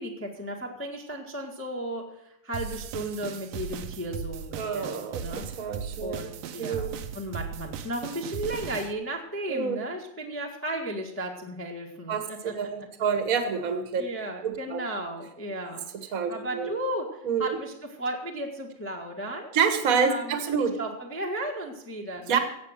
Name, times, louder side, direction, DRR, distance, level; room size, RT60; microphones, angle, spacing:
voice 1, 0.0-5.4 6.0-6.9 7.1-12.5 14.0-15.9 16.3-19.5 20.0-22.4, right 1 dB, 5° left, 0 dB, 1.0 m, -35 dB
sound 1, 2.5-8.9, right 7 dB, 75° right, 1.9 m, -37 dB
voice 2, 4.5-6.2 6.6-6.9 9.5-9.8 12.1-12.3 12.5-14.0 14.4-14.8 15.9-16.7 17.2-17.6 19.5-20.8 22.3-22.4, right 6 dB, 40° right, 7 dB, 1.4 m, -27 dB
15.5 x 8.3 x 6.6 m, 0.77 s
omnidirectional pair, 3.3 m